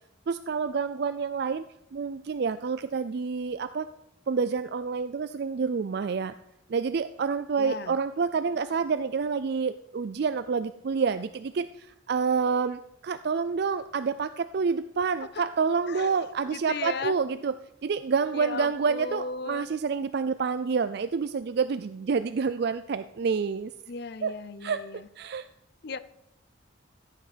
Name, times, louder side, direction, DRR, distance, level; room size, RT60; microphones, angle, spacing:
voice 1, 0.3-1.6 1.9-3.9 4.3-6.3 6.7-17.5 17.8-23.7 24.2-24.3 24.6-24.8 25.2-25.5, right 5 dB, 60° right, 12 dB, 0.4 m, -28 dB
voice 2, 7.6-8.0 15.9-17.2 18.3-19.7 23.9-25.1 25.8-26.0, left 4 dB, 60° left, 15 dB, 0.6 m, -36 dB
14.5 x 8.5 x 5.1 m, 0.82 s
head